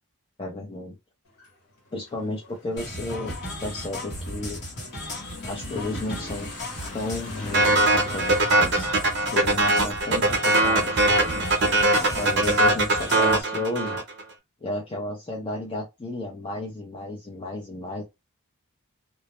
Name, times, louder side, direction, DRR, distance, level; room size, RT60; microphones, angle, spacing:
voice 1, 0.4-1.0 1.9-3.3 3.6-4.6 5.4-6.5 6.9-8.9 9.2-14.0 14.6-18.0, left 2 dB, 25° left, 0.5 m, -33 dB
Motorcycle / Accelerating revving vroom, 1.3-13.6, left 2 dB, 80° left, 1.0 m, -44 dB
sound 1, 2.8-13.4, left 1 dB, 50° left, 1.0 m, -36 dB
sound 2, 7.5-14.2, right 2 dB, 50° right, 0.7 m, -21 dB
2.2 x 2.1 x 2.9 m
head